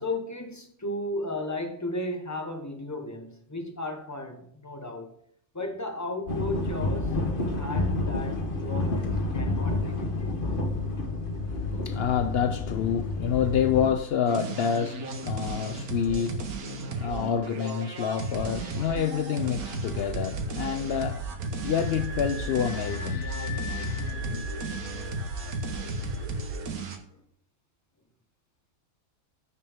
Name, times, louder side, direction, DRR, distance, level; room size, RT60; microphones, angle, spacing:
voice 1, 0.0-5.1 5.5-10.4 24.9-25.1 25.9-26.1, left 1 dB, 15° left, 0.9 m, -35 dB
sound 1, 6.3-13.9, left 2 dB, 40° left, 1.3 m, -29 dB
voice 2, 11.5-21.3 21.6-23.2 24.3-24.5, left 8 dB, 80° left, 0.5 m, -28 dB
sound 2, 14.3-27.0, right 3 dB, 80° right, 1.6 m, -34 dB
sound 3, 21.3-26.3, left 5 dB, 55° left, 1.6 m, -38 dB
14.5 x 5.4 x 3.6 m
omnidirectional pair, 1.6 m